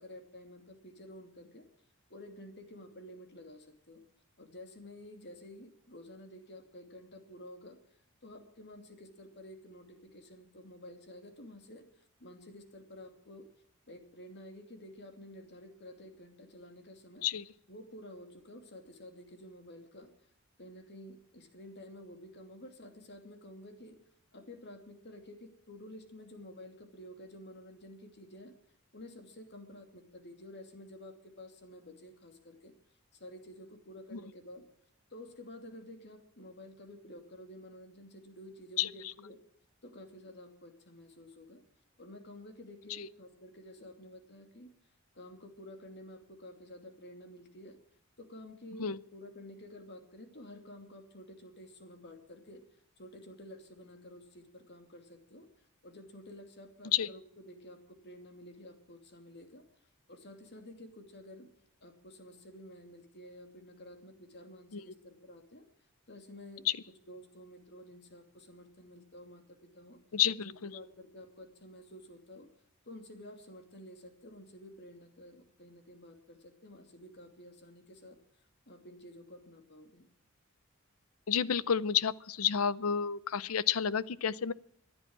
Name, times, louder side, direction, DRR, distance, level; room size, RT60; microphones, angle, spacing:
voice 1, 0.0-1.7 2.1-4.0 4.4-7.8 8.2-13.5 13.9-17.3 17.7-20.1 20.6-24.0 24.3-28.5 28.9-32.7 33.1-34.6 35.1-39.4 39.8-41.6 42.0-44.7 45.1-47.8 48.2-52.6 53.0-55.5 55.8-59.6 60.1-61.5 61.8-65.6 66.1-66.7 67.1-70.0 70.4-72.5 72.9-78.2 78.7-80.1, left 1 dB, 55° left, 6 dB, 2.7 m, -51 dB
voice 2, 38.8-39.1 42.9-43.1 48.8-49.0 56.9-57.1 64.7-64.8 66.7-66.8 70.1-70.7 81.3-84.5, left 8 dB, 85° left, 18 dB, 0.6 m, -30 dB
14.5 x 10.5 x 8.8 m, 0.68 s
head